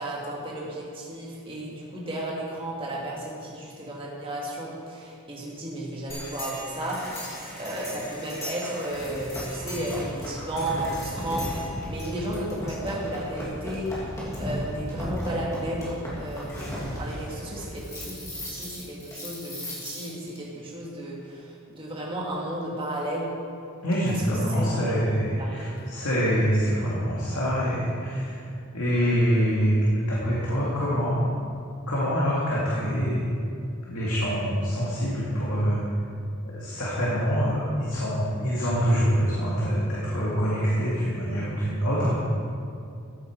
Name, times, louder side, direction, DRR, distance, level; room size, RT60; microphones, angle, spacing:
voice 1, 0.0-13.9 14.3-23.3 24.5-25.9, right 1 dB, 25° right, -4 dB, 2.0 m, -33 dB
sound 1, 6.1-20.4, equal, 15° left, 2.6 m, -36 dB
voice 2, 23.8-28.4 28.7-31.2 31.9-33.3 33.9-35.8 36.4-42.2, equal, 75° left, -7 dB, 2.2 m, -25 dB
14.0 x 8.4 x 4.6 m, 2.5 s
head